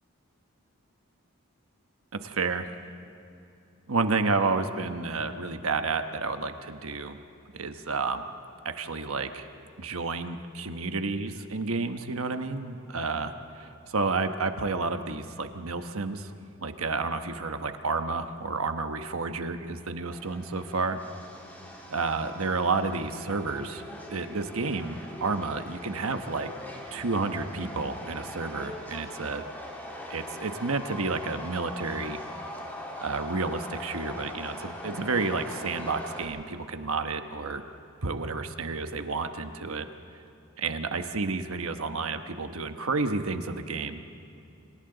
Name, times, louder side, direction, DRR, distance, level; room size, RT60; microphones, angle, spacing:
voice 1, 2.1-2.7 3.9-7.2 7.5-8.3 8.6-9.5 9.8-16.3 16.6-21.0 21.9-23.8 24.1-26.5 26.9-29.4 30.1-32.2 33.0-37.6 38.0-39.9 40.6-44.1, right 3 dB, 85° right, 7 dB, 1.1 m, -30 dB
Subway metro underground, 20.1-36.2, left 1 dB, 10° left, 2.7 m, -41 dB
29.0 x 27.0 x 4.0 m, 2.7 s
head